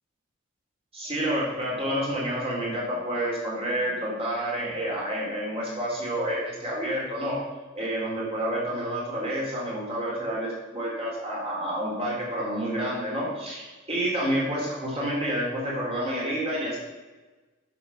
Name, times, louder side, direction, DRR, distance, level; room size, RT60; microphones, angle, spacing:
voice 1, 0.9-7.4 7.7-16.8, right 1 dB, 30° right, -4 dB, 3.8 m, -29 dB
10.0 x 6.7 x 5.9 m, 1.2 s
head